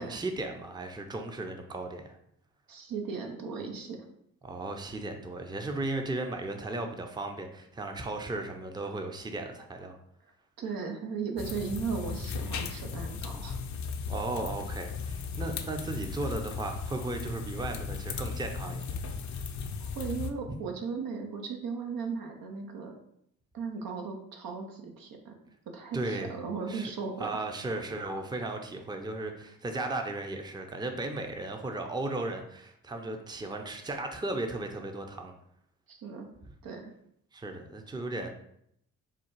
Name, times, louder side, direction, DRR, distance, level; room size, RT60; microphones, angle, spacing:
voice 1, 0.0-2.2 4.4-10.0 14.1-19.0 20.5-20.6 25.9-26.4 26.7-26.9 27.2-35.3 37.3-38.3, right 2 dB, 10° right, 4 dB, 0.6 m, -36 dB
voice 2, 2.7-4.0 10.6-13.5 19.3-19.4 19.8-22.9 23.5-25.3 25.7-27.5 35.9-36.3 36.6-36.9, right 5 dB, 70° right, 3 dB, 0.8 m, -37 dB
sound 1, 11.4-20.3, left 5 dB, 50° left, 0.5 m, -36 dB
3.7 x 2.3 x 4.5 m, 0.73 s
supercardioid pair, 50°, 36 cm